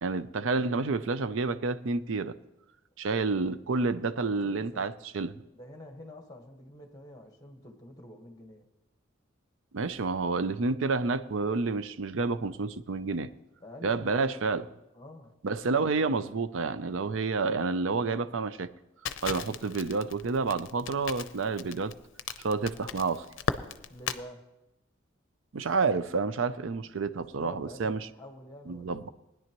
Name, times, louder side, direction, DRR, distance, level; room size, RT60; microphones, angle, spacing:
voice 1, 0.0-2.3 3.0-5.4 9.7-13.3 13.8-14.7 15.4-18.7 19.2-21.9 22.4-23.3 25.5-28.1 28.7-29.1, right 4 dB, 70° right, 0.5 m, -29 dB
voice 2, 4.2-4.9 5.5-8.7 13.6-14.4 14.9-15.3 23.9-24.5 27.4-29.0, left 1 dB, 20° left, 1.4 m, -48 dB
Crackle, 19.1-24.2, left 6 dB, 75° left, 0.6 m, -36 dB
19.5 x 10.0 x 3.0 m
head